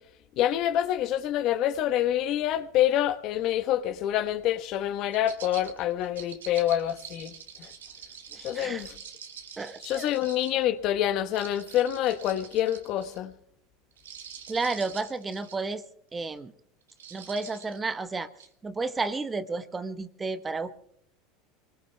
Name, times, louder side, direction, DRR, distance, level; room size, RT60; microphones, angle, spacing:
voice 1, 0.4-7.3 7.6-7.7 8.4-8.9 9.8-13.3, left 12 dB, 55° left, 1.2 m, -27 dB
sound 1, 5.1-10.6 11.3-13.2 13.9-15.6 16.2-16.4 16.9-17.8 18.4-18.5, right 8 dB, 80° right, 1.8 m, -46 dB
voice 2, 8.3-8.9 9.6-10.1 14.5-15.8 16.1-16.5 17.1-18.3 18.6-20.7, right 3 dB, 20° right, 1.1 m, -32 dB
25.5 x 20.0 x 2.3 m
hypercardioid pair, 80°, 0 cm